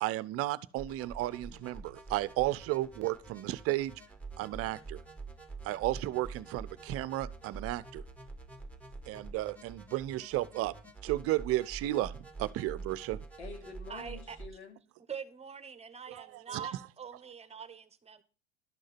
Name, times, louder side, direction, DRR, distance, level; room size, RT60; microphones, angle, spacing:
voice 1, 0.0-3.9 4.4-5.0 5.6-8.0 9.1-10.7 11.0-13.2 16.1-16.7, right 16 dB, 45° right, 0.7 m, -33 dB
sound 1, 0.8-14.5, right 4 dB, 5° left, 2.0 m, -47 dB
voice 2, 13.4-14.8, left 4 dB, 85° left, 2.9 m, -47 dB
voice 3, 13.9-14.4 15.1-18.2, right 7 dB, 20° right, 1.2 m, -44 dB
12.0 x 6.4 x 5.8 m
hypercardioid pair, 90°, 33 cm